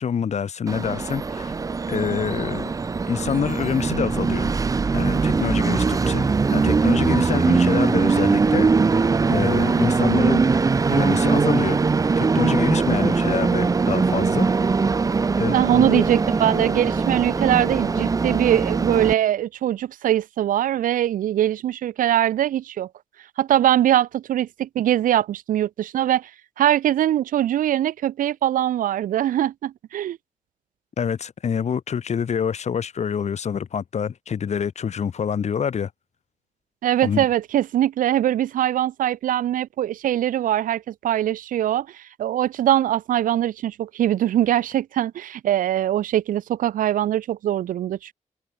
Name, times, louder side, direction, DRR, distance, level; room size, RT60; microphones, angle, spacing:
voice 1, 0.0-1.5 1.9-2.7 3.1-4.5 4.9-8.7 9.3-10.4 10.9-11.8 12.2-14.5 15.4-16.0 31.0-35.9 37.0-37.3, left 7 dB, 55° left, 1.7 m, -26 dB
Train, 0.7-19.1, right 4 dB, 25° right, 0.5 m, -21 dB
voice 2, 15.5-22.9 23.4-26.3 26.6-30.2 36.8-48.1, right 11 dB, 90° right, 1.1 m, -22 dB
cardioid pair, 95°, 14 cm